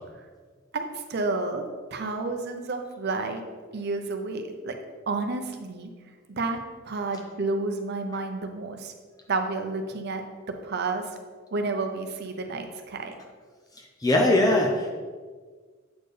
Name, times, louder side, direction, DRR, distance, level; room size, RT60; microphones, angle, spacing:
voice 1, 0.7-1.6 1.9-3.4 3.7-4.7 5.1-5.9 6.3-6.6 6.8-8.9 9.3-11.0 11.5-13.1, right 3 dB, 55° right, 5 dB, 0.6 m, -30 dB
voice 2, 14.0-14.9, left 1 dB, 20° left, 1 dB, 0.5 m, -20 dB
7.9 x 4.3 x 3.3 m, 1.5 s
head